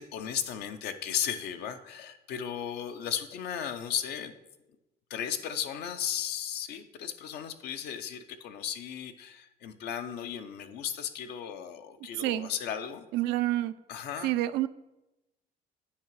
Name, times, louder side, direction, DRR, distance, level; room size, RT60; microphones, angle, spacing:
voice 1, 0.0-4.3 5.1-13.1 13.9-14.3, left 9 dB, 75° left, 9 dB, 0.7 m, -35 dB
voice 2, 13.1-13.7 14.2-14.7, right 15 dB, 90° right, 14 dB, 0.4 m, -28 dB
8.7 x 4.9 x 4.6 m, 0.97 s
cardioid pair, 110°, 17 cm